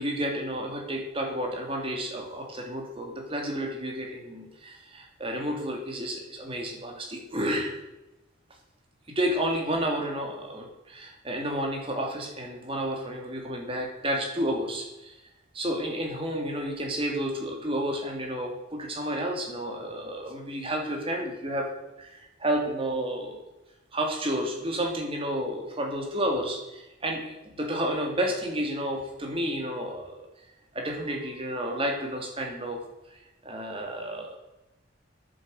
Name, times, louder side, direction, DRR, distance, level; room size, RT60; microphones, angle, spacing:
voice 1, 0.0-7.7 9.1-15.2 15.5-21.7 22.0-23.4 23.9-30.2 30.7-32.8 33.1-34.4, equal, 25° right, 1 dB, 2.6 m, -31 dB
9.7 x 9.1 x 7.7 m, 0.96 s
head